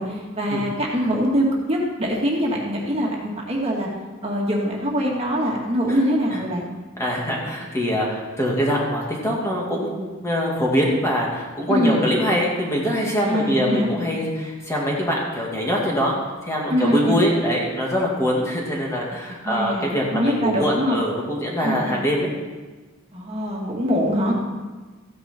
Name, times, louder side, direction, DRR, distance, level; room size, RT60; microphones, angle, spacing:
voice 1, 0.0-3.9 4.2-6.7 11.7-12.0 13.3-13.9 16.7-17.2 19.4-21.0 21.6-22.0 23.1-24.3, equal, 30° right, -2 dB, 2.1 m, -23 dB
voice 2, 7.0-22.3, equal, 15° left, -3 dB, 2.2 m, -23 dB
14.5 x 9.9 x 4.5 m, 1.3 s
head